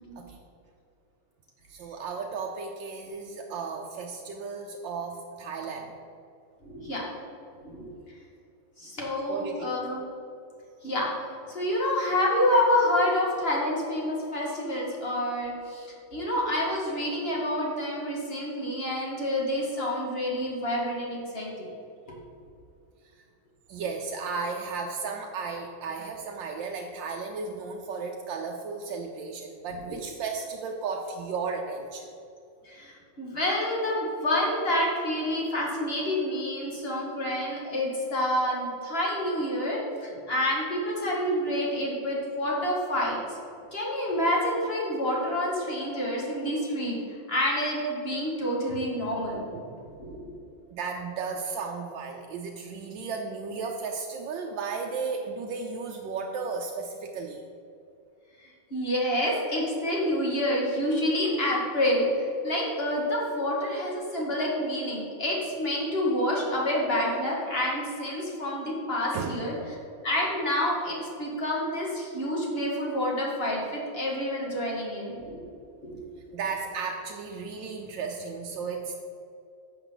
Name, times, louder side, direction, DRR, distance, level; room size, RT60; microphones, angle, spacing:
voice 1, 1.7-5.9 9.3-9.7 23.7-32.1 48.7-48.8 49.5-49.8 50.7-57.4 69.1-69.5 76.3-79.0, right 4 dB, 80° right, 1 dB, 1.4 m, -34 dB
voice 2, 6.6-7.0 7.6-7.9 8.8-10.0 10.8-11.1 11.5-21.7 32.6-43.2 43.7-47.0 47.3-49.4 50.0-50.2 58.7-62.1 62.4-69.5 70.0-75.4 75.9-76.0, left 1 dB, 35° left, -3 dB, 2.1 m, -28 dB
10.5 x 7.3 x 3.9 m, 2.6 s
omnidirectional pair, 2.0 m